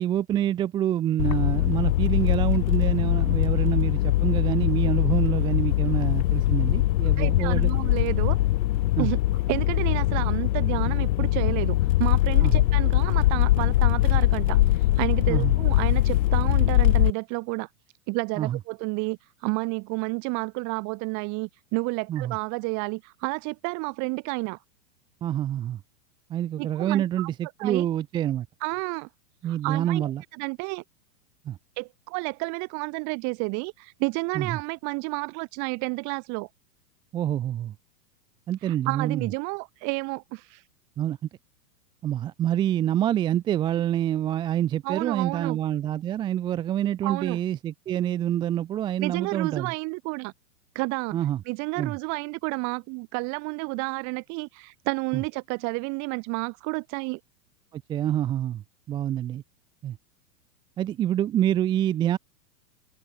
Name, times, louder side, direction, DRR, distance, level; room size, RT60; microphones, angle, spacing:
voice 1, 0.0-7.7 9.0-9.1 12.4-12.6 15.3-15.5 18.4-18.6 22.1-22.3 25.2-25.8 26.3-28.5 29.4-30.2 31.5-31.6 34.3-34.6 37.1-37.7 38.5-39.3 41.0-41.2 42.0-49.7 51.1-51.4 51.8-51.9 55.1-55.2 57.7-58.6 58.9-59.4 59.8-60.0 60.8-62.2, right 11 dB, 10° right, 0.5 m, -26 dB
sound 1, 1.2-17.1, left 15 dB, 85° left, 0.8 m, -22 dB
voice 2, 7.2-8.4 9.0-9.2 9.5-17.7 18.1-24.6 26.6-27.3 27.6-27.9 28.6-29.1 29.4-30.1 30.4-30.8 31.8-36.5 38.6-40.6 44.8-45.6 47.0-47.4 49.0-50.3 50.8-51.2 51.5-57.2, right 30 dB, 35° right, 2.0 m, -31 dB
supercardioid pair, 150°, 50 cm